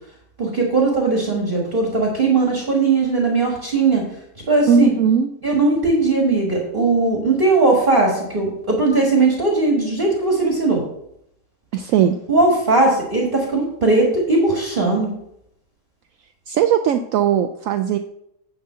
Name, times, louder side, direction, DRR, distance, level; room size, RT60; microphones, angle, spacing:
voice 1, 0.4-4.0 4.5-4.9 5.4-10.8 12.3-15.1, right 3 dB, 35° right, -1 dB, 1.6 m, -18 dB
voice 2, 4.7-5.3 11.7-12.2 16.5-18.0, right 7 dB, 70° right, 6 dB, 0.9 m, -18 dB
9.7 x 3.7 x 6.6 m, 0.76 s
omnidirectional pair, 1.6 m